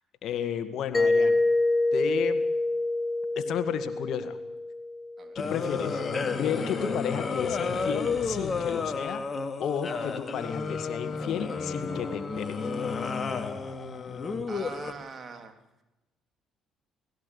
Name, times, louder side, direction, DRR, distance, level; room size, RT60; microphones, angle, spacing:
voice 1, 0.2-1.4 1.9-2.4 3.4-4.4 5.3-6.0 6.4-9.2 9.6-12.7, left 9 dB, 65° left, 10 dB, 2.0 m, -33 dB
Mallet percussion, 0.9-5.6, left 2 dB, 15° left, 1.7 m, -26 dB
voice 2, 5.2-5.5 14.5-15.6, right 5 dB, 40° right, 6 dB, 3.4 m, -43 dB
sound 1, 5.4-14.9, left 4 dB, 35° left, 2.6 m, -31 dB
19.0 x 17.0 x 8.5 m, 0.98 s
supercardioid pair, 75°, 0 cm